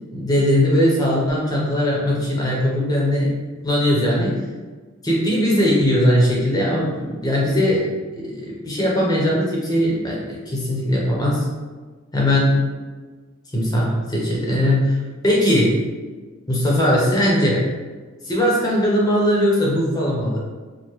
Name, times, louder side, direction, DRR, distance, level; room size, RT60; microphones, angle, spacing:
voice 1, 0.1-3.3 3.6-4.3 5.0-7.9 8.1-11.5 12.1-12.6 13.5-15.0 15.2-15.8 16.5-17.6 18.3-20.4, equal, 20° left, -4 dB, 0.8 m, -19 dB
4.6 x 2.1 x 3.0 m, 1.4 s
head